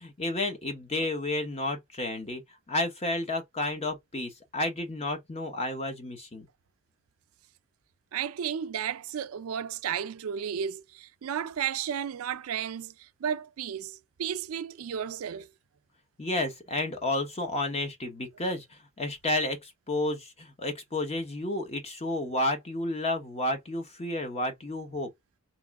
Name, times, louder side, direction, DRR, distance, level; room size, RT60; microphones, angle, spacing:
voice 1, 0.0-2.4 2.7-6.5 16.2-25.1, left 2 dB, 30° left, 0.9 m, -31 dB
voice 2, 8.1-15.5, right 8 dB, 80° right, 0.4 m, -33 dB
3.0 x 2.9 x 3.5 m
head